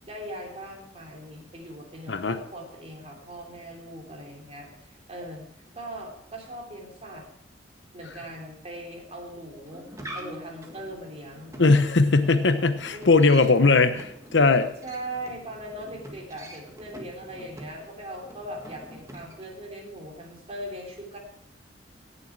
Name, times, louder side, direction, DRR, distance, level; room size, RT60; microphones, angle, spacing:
voice 1, 0.0-5.4 5.7-7.2 7.9-9.8 10.1-11.5 12.9-13.8 14.8-21.2, right 1 dB, 35° right, 0 dB, 3.0 m, -40 dB
sound 1, 9.6-19.6, equal, 15° right, 1.8 m, -45 dB
voice 2, 11.6-14.7, left 3 dB, 70° left, 10 dB, 0.9 m, -19 dB
17.0 x 6.9 x 4.7 m, 0.78 s
head